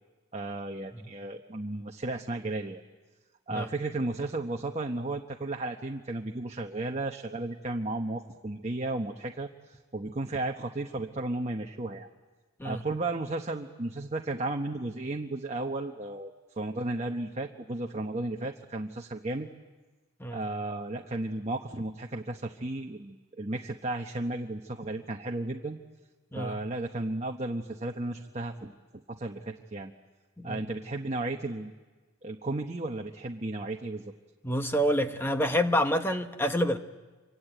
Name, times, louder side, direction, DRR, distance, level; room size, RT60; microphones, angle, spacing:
voice 1, 0.3-2.8 3.5-12.1 12.6-19.5 20.3-25.8 26.3-28.7 29.1-29.9 30.4-31.7 32.2-34.1, right 2 dB, 30° right, 3 dB, 1.0 m, -34 dB
voice 2, 34.4-36.8, equal, 10° left, 7 dB, 1.1 m, -27 dB
27.0 x 24.5 x 9.0 m, 1.3 s
head